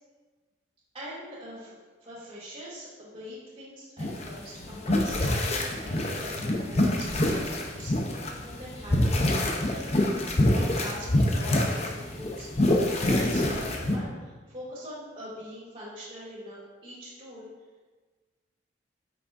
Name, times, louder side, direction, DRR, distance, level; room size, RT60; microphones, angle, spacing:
voice 1, 0.9-1.7 2.0-17.5, equal, 25° right, -10 dB, 2.1 m, -42 dB
sound 1, 4.0-14.0, left 1 dB, 35° left, 0.7 m, -26 dB
8.8 x 6.0 x 2.6 m, 1.3 s
head